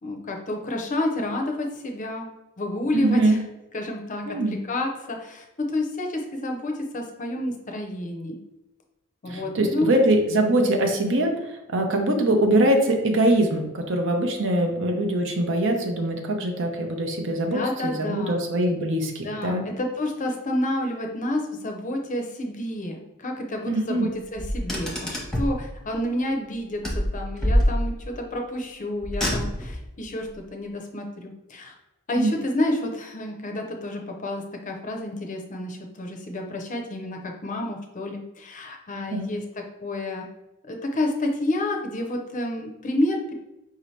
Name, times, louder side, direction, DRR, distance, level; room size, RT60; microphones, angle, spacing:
voice 1, 0.0-2.3 2.6-3.4 3.7-8.4 9.2-9.9 17.3-18.4 19.2-31.7 32.1-39.4 39.8-40.3 40.6-43.3, left 1 dB, 35° left, 3 dB, 0.6 m, -29 dB
voice 2, 2.9-3.4 4.3-4.6 9.3-19.7 23.7-24.1 32.2-32.3 39.1-39.3, right 1 dB, 60° right, 3 dB, 0.7 m, -23 dB
Car, 24.4-25.6 26.8-28.2 29.0-29.8, equal, ahead, 0.9 m, -25 dB
5.0 x 2.8 x 3.2 m, 0.96 s
head